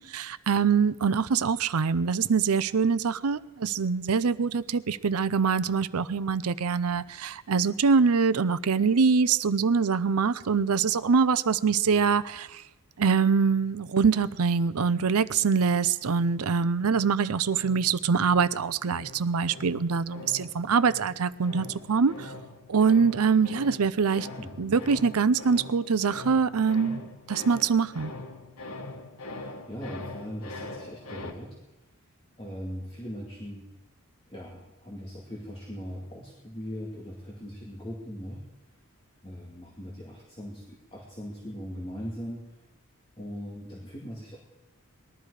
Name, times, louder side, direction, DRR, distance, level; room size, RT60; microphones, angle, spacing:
voice 1, 0.0-12.6 13.0-22.3 22.7-24.3 24.6-28.1, right 5 dB, 85° right, 15 dB, 0.6 m, -24 dB
sound 1, 13.3-15.7 16.1-31.3, left 2 dB, 85° left, 1.6 m, -43 dB
voice 2, 24.4-24.8 29.2-31.6 32.4-33.7 34.3-38.4 39.2-42.4 43.2-44.4, equal, 25° left, -4 dB, 2.4 m, -40 dB
20.0 x 12.5 x 4.9 m, 1.0 s
head